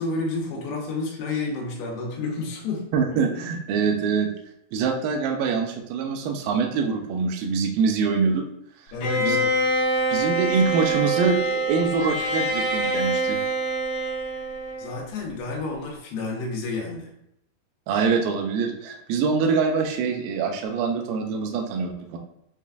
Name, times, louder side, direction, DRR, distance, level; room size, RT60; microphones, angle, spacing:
voice 1, 0.0-2.9 8.9-9.5 14.8-17.1, left 3 dB, 85° left, -2 dB, 2.9 m, -30 dB
voice 2, 2.9-4.3 4.7-8.5 9.2-9.4 10.1-13.4 17.9-22.2, right 5 dB, 85° right, 3 dB, 2.0 m, -24 dB
Bowed string instrument, 9.0-15.1, right 1 dB, 65° left, 2.7 m, -25 dB
7.2 x 2.4 x 2.2 m, 0.77 s
omnidirectional pair, 4.7 m